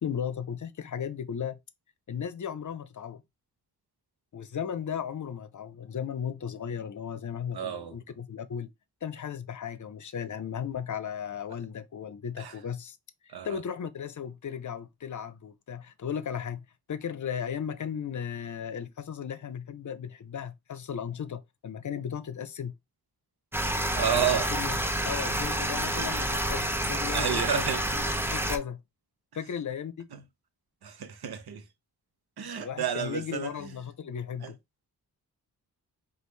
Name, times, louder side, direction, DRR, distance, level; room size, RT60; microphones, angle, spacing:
voice 1, 0.0-1.6 2.1-3.2 4.3-8.7 9.0-13.0 13.2-22.7 24.1-24.8 25.0-28.8 29.3-30.1 32.6-34.6, left 8 dB, 50° left, 0.6 m, -36 dB
voice 2, 7.5-8.0 12.4-12.5 13.3-13.5 24.0-24.6 25.8-26.1 27.1-27.8 30.8-31.6 32.4-33.5 34.4-34.5, right 8 dB, 75° right, 0.8 m, -30 dB
sound 1, 23.5-28.6, right 1 dB, 5° right, 0.6 m, -29 dB
5.1 x 2.5 x 3.1 m
cardioid pair, 70°, 38 cm